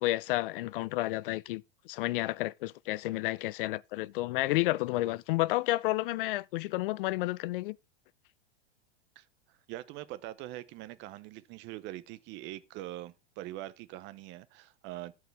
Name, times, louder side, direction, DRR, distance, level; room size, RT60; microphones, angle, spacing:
voice 1, 0.0-7.8, left 18 dB, 60° left, 0.5 m, -31 dB
voice 2, 9.2-15.1, right 15 dB, 35° right, 0.8 m, -43 dB
13.5 x 4.8 x 3.4 m
supercardioid pair, 140°, 31 cm